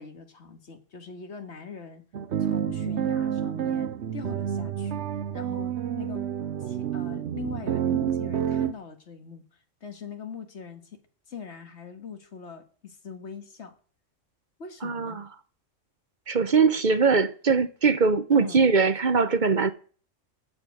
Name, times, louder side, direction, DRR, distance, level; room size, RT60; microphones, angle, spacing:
voice 1, 0.0-2.0 2.4-5.0 5.3-6.3 6.6-9.4 9.8-11.0 11.3-13.7 14.6-15.2 18.3-18.6, left 6 dB, 60° left, 1.9 m, -42 dB
sound 1, 2.1-8.7, right 9 dB, 65° right, 1.0 m, -29 dB
voice 2, 14.8-15.2 16.3-19.7, right 5 dB, 45° right, 0.8 m, -21 dB
14.5 x 5.4 x 9.3 m
omnidirectional pair, 1.3 m